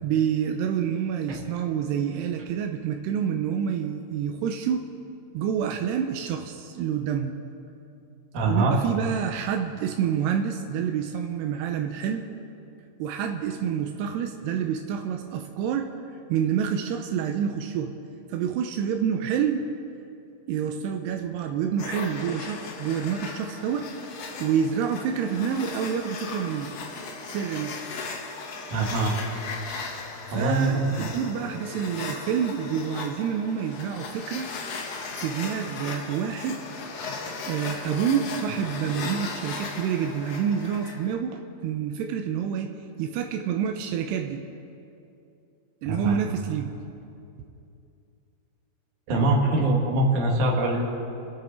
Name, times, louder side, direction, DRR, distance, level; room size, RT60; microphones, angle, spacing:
voice 1, 0.0-4.9 5.3-7.4 8.5-12.2 13.0-15.9 16.3-17.9 18.3-19.6 20.5-23.9 24.4-26.7 27.3-27.8 30.3-34.5 35.2-36.6 37.5-44.4 45.8-46.7, right 8 dB, 85° right, 4 dB, 2.8 m, -28 dB
voice 2, 8.3-8.8 28.7-29.2 30.3-30.9 45.9-46.1 49.1-50.8, right 2 dB, 55° right, 0 dB, 3.0 m, -23 dB
sound 1, 21.8-41.1, left 4 dB, 70° left, 1.5 m, -37 dB
28.0 x 10.0 x 4.4 m, 2.6 s
omnidirectional pair, 4.7 m